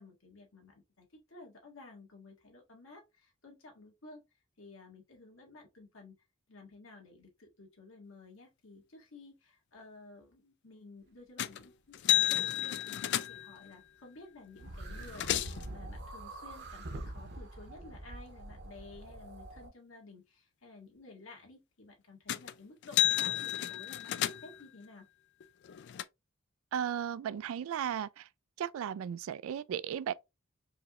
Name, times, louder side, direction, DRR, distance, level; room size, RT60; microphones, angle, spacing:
voice 1, 0.0-4.2 4.6-6.2 6.5-25.1, left 3 dB, 75° left, 1.8 m, -54 dB
sound 1, 11.4-11.6 11.9-13.6 14.6-14.7 14.9-15.7 22.3-22.5 22.8-24.6 25.4-26.0, left 13 dB, 55° left, 0.3 m, -31 dB
sound 2, 14.6-19.7, right 1 dB, 55° right, 0.9 m, -45 dB
voice 2, 26.7-28.3 28.6-30.1, right 9 dB, 75° right, 0.3 m, -35 dB
4.7 x 3.0 x 2.4 m
head